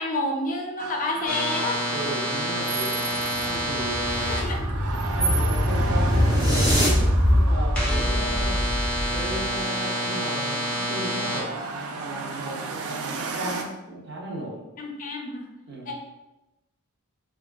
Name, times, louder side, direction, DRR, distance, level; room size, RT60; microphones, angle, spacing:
voice 1, 0.0-1.8 4.2-4.7 14.8-15.5 15.9-16.0, left 2 dB, 40° left, 1 dB, 0.4 m, -29 dB
sound 1, 0.8-13.6, right 4 dB, 85° right, 0.4 m, -34 dB
sound 2, 1.2-4.4 7.7-11.4, equal, 5° left, 1.0 m, -28 dB
voice 2, 1.9-4.3 5.2-8.6 9.1-11.5 11.9-14.6 15.7-15.9, right 1 dB, 50° right, -2 dB, 0.7 m, -35 dB
sound 3, 3.2-9.6, equal, 20° right, 0.7 m, -23 dB
3.5 x 2.3 x 2.2 m, 0.98 s
head